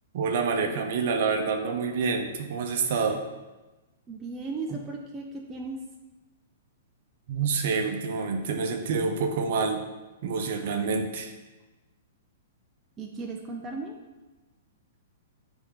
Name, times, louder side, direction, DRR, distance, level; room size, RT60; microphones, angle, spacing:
voice 1, 0.1-3.2 7.3-9.8 10.2-11.3, right 5 dB, 50° right, 5 dB, 0.7 m, -27 dB
voice 2, 4.1-5.8 13.0-13.9, right 3 dB, 15° right, 0 dB, 0.4 m, -36 dB
8.1 x 3.4 x 3.7 m, 1.1 s
hypercardioid pair, 170°, 0 cm